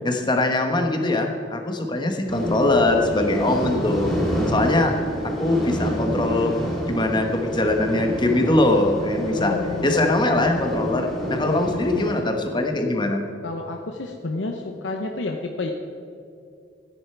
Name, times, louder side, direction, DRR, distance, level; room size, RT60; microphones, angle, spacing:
voice 1, 0.0-4.1 4.5-4.9 5.2-6.5 6.9-9.6 9.8-13.2, left 2 dB, 25° left, 4 dB, 1.2 m, -22 dB
sound 1, 2.3-12.2, equal, 5° left, 3.6 m, -28 dB
voice 2, 4.3-4.8 9.3-10.2 11.4-11.6 11.9-12.2 13.4-15.7, left 3 dB, 80° left, 3 dB, 0.8 m, -31 dB
14.5 x 10.0 x 4.6 m, 2.6 s
head